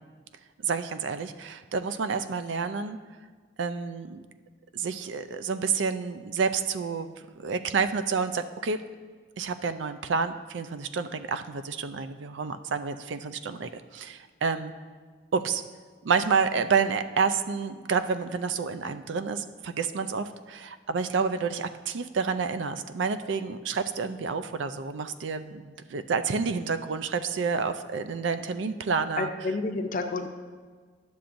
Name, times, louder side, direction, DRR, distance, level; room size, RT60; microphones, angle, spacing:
voice 1, 0.6-3.0 3.6-4.2 4.7-8.8 9.4-14.7 15.3-15.6 16.0-29.3, right 5 dB, 85° right, 10 dB, 0.4 m, -29 dB
voice 2, 29.2-30.3, left 3 dB, 45° left, 6 dB, 0.5 m, -29 dB
11.5 x 6.9 x 2.6 m, 1.5 s
head